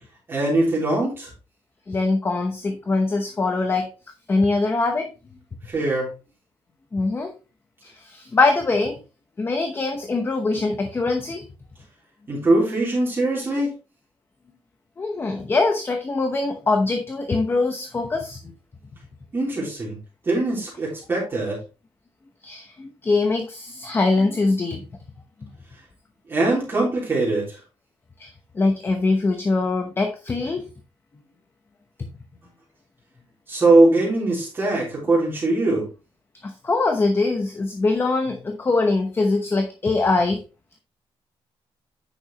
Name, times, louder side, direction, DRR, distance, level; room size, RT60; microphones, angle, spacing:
voice 1, 0.3-1.3 5.7-6.1 12.3-13.8 19.3-20.0 20.3-21.6 26.3-27.6 33.5-35.9, right 2 dB, 25° right, -5 dB, 3.5 m, -21 dB
voice 2, 1.9-3.9 4.3-5.1 6.9-7.3 7.8-9.0 9.4-11.4 15.0-18.4 22.4-24.8 25.4-25.5 28.2-30.6 36.4-40.4, left 3 dB, 25° left, 5 dB, 0.9 m, -23 dB
9.3 x 6.2 x 3.0 m, 0.30 s
wide cardioid pair, 165°, 10 cm